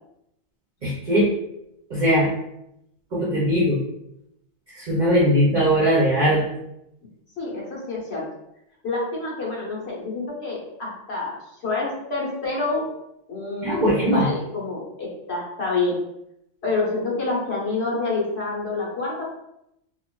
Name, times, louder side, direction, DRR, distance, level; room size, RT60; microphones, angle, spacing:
voice 1, 0.8-1.3 1.9-2.3 3.1-3.8 4.8-6.4 13.6-14.3, equal, 50° right, -6 dB, 0.6 m, -20 dB
voice 2, 7.4-8.2 8.8-11.3 11.6-12.8 13.3-16.0 16.6-19.2, left 3 dB, 55° left, -5 dB, 1.2 m, -27 dB
4.4 x 2.4 x 2.2 m, 0.81 s
omnidirectional pair, 1.4 m